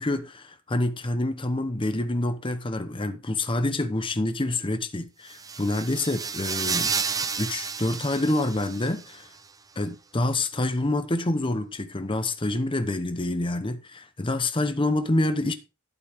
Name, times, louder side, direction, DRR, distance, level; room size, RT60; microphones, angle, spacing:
voice 1, 0.0-6.9 7.4-9.3 9.8-15.5, left 2 dB, 25° left, 0.8 m, -27 dB
sound 1, 5.3-9.2, right 5 dB, 15° right, 0.6 m, -31 dB
11.0 x 8.3 x 3.5 m
head